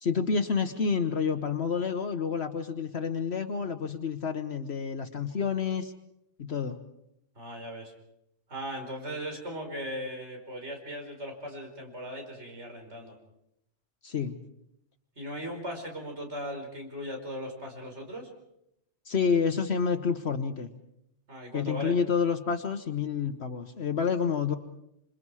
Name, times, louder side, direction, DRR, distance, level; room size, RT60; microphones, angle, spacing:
voice 1, 0.0-5.9 6.4-6.8 14.0-14.4 19.1-20.7 21.5-24.6, left 6 dB, 60° left, 7 dB, 1.4 m, -29 dB
voice 2, 7.4-7.9 8.5-13.1 15.2-18.3 21.3-21.9, equal, 65° right, 2 dB, 5.3 m, -38 dB
27.5 x 26.5 x 4.8 m, 0.80 s
omnidirectional pair, 1.2 m